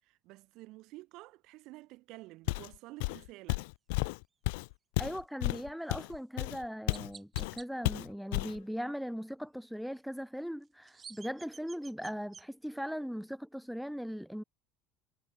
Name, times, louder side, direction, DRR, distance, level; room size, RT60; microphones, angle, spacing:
voice 1, 0.0-3.7, right 20 dB, 50° right, 7.4 m, -51 dB
Walk footsteps, 2.5-2.7 3.0-7.1 7.3-7.6 7.8-8.6, left 26 dB, 80° left, 0.4 m, -33 dB
voice 2, 5.0-14.4, equal, ahead, 1.8 m, -39 dB
Chirp tweet, 6.0-6.2 6.9-7.7 10.6-12.5, right 6 dB, 15° right, 3.5 m, -51 dB
cardioid pair, 170°, 0 cm